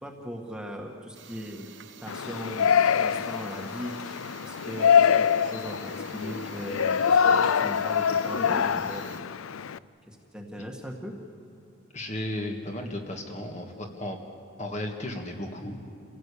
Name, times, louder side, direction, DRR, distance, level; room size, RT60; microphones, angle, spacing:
voice 1, 0.0-1.7 2.0-9.2 10.1-11.1, equal, 5° right, 1 dB, 1.7 m, -39 dB
sound 1, 1.1-9.2, right 7 dB, 60° right, 1.2 m, -49 dB
Yell, 2.1-9.8, left 7 dB, 85° left, 0.5 m, -24 dB
voice 2, 11.9-14.2 14.6-15.8, left 1 dB, 35° left, 3 dB, 1.9 m, -34 dB
28.0 x 17.0 x 8.5 m, 2.6 s
head